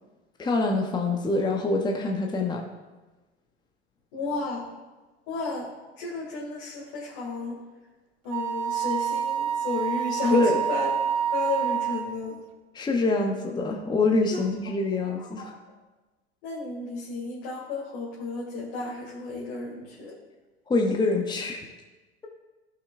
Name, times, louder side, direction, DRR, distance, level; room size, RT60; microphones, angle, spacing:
voice 1, 0.4-2.6 10.3-10.6 12.7-15.5 20.7-21.6, left 2 dB, 15° left, 1 dB, 0.9 m, -25 dB
voice 2, 4.1-4.6 5.3-5.7 6.0-7.6 8.2-10.9 11.3-12.3 15.1-15.5 16.4-20.1, left 3 dB, 55° left, -5 dB, 2.2 m, -32 dB
Wind instrument woodwind instrument, 8.3-12.2, right 9 dB, 50° right, 0.9 m, -27 dB
14.5 x 6.0 x 2.5 m, 1.2 s
hypercardioid pair, 90°, 33 cm